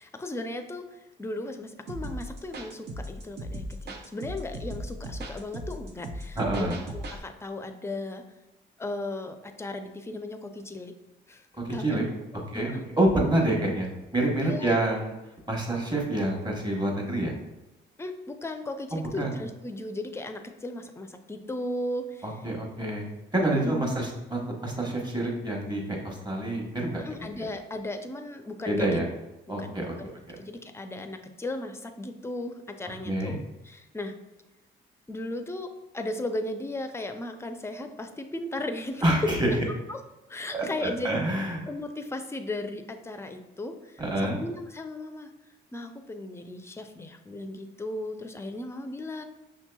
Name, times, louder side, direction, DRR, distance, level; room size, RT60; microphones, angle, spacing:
voice 1, 0.0-8.2 8.8-10.9 11.3-12.0 12.3-12.8 14.4-14.8 18.0-22.3 23.5-23.9 26.9-29.0 29.6-29.7 30.0-30.1 30.4-33.4 33.6-34.1 35.1-39.0 39.9-40.0 40.3-41.3 41.7-45.3 45.7-49.2, left 1 dB, 15° left, 6 dB, 0.4 m, -36 dB
sound 1, 1.9-7.2, equal, 55° right, 0.7 m, -37 dB
voice 2, 6.4-6.8 11.6-12.0 12.5-15.1 15.5-17.3 18.9-19.3 22.2-23.1 23.3-27.0 28.7-29.1 29.5-29.9 33.0-33.4 39.0-39.6 40.5-41.6 44.0-44.4, right 1 dB, 20° right, -1 dB, 1.1 m, -27 dB
6.1 x 2.8 x 2.2 m, 1.0 s
cardioid pair, 90°, 20 cm